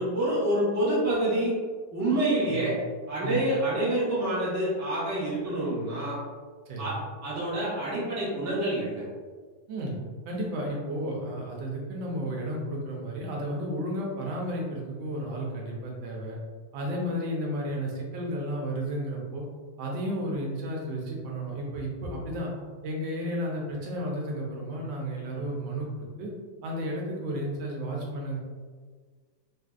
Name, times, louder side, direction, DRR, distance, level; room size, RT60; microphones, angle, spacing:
voice 1, 0.0-1.5 1.9-2.8 3.1-6.2 6.8-9.0, right 1 dB, 20° right, -8 dB, 0.4 m, -27 dB
voice 2, 2.4-2.7 3.2-3.4 6.7-7.0 9.7-10.0 10.3-16.4 16.7-19.4 19.8-22.5 22.8-26.3 26.6-28.4, equal, 85° right, -2 dB, 1.5 m, -33 dB
3.5 x 2.5 x 2.3 m, 1.5 s
omnidirectional pair, 2.1 m